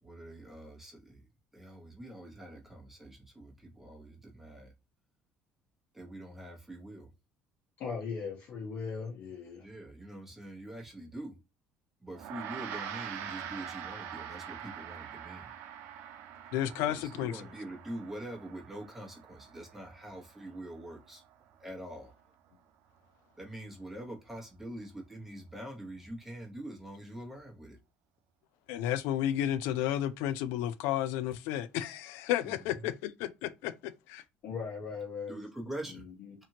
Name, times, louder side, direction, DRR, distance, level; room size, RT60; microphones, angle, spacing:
voice 1, 0.0-1.2 1.5-4.7 5.9-7.1 9.6-11.3 12.0-15.5 16.8-21.2 21.6-22.1 23.4-27.8 32.4-32.5 32.8-32.9 35.3-36.1, right 1 dB, 5° right, 1.0 m, -44 dB
voice 2, 7.8-9.7 34.4-35.4 36.2-36.3, left 5 dB, 65° left, 1.0 m, -38 dB
Gong, 12.1-21.8, right 9 dB, 75° right, 0.5 m, -44 dB
voice 3, 16.5-17.4 28.7-34.2, left 12 dB, 85° left, 0.3 m, -32 dB
2.8 x 2.4 x 2.8 m
cardioid pair, 115°, 4 cm